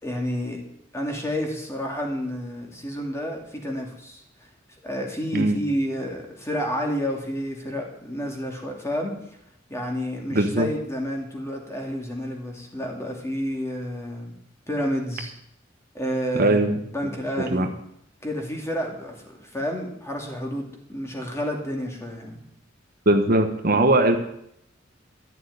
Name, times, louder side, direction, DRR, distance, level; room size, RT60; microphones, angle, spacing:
voice 1, 0.0-0.6 0.9-4.2 4.8-9.2 9.7-14.3 14.7-15.3 15.9-16.6 16.9-17.7 18.2-22.4, equal, 15° left, 1 dB, 2.5 m, -30 dB
voice 2, 10.3-10.7 16.3-16.8 17.5-17.7 23.1-24.2, right 2 dB, 50° right, 5 dB, 1.2 m, -20 dB
12.0 x 6.7 x 9.5 m, 0.74 s
head